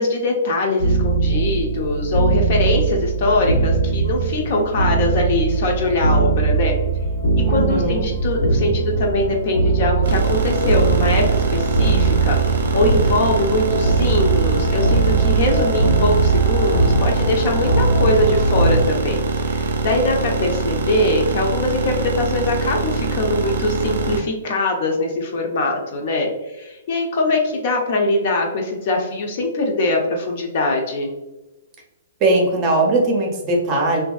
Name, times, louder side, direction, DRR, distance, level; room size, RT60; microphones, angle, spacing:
voice 1, 0.0-6.7 7.5-31.1, left 2 dB, 50° left, 1 dB, 0.6 m, -22 dB
sound 1, 0.8-18.8, right 4 dB, 85° left, 0.8 m, -20 dB
voice 2, 7.4-8.1 32.2-34.0, right 2 dB, 30° right, 1 dB, 0.6 m, -19 dB
sound 2, 10.0-24.2, right 3 dB, 75° right, 0.5 m, -24 dB
2.7 x 2.6 x 2.3 m, 1.0 s
hypercardioid pair, 155°, 0 cm